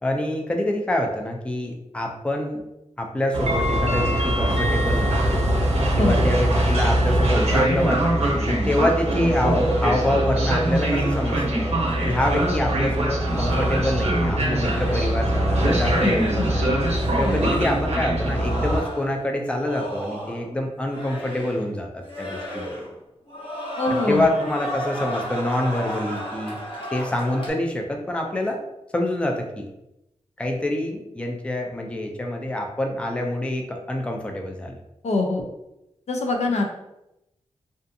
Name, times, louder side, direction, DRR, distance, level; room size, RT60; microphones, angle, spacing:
voice 1, 0.0-2.6 3.0-5.5 6.0-11.7 12.1-16.8 17.2-22.7 23.9-26.6 26.9-28.6 28.9-29.7 30.4-34.7, left 1 dB, 10° left, 2 dB, 0.4 m, -26 dB
Train, 3.3-18.8, right 1 dB, 60° right, 0.8 m, -22 dB
voice 2, 5.9-6.3 16.0-16.5 23.8-24.3 35.0-35.4 36.1-36.6, left 2 dB, 70° left, 2 dB, 0.4 m, -24 dB
sound 1, 9.1-15.3 15.7-16.6 16.9-17.7 18.2-20.5 20.8-21.7 22.0-23.0 23.3-27.5, equal, 50° left, 0.9 m, -35 dB
2.5 x 2.4 x 2.6 m, 0.89 s
wide cardioid pair, 85°, 12 cm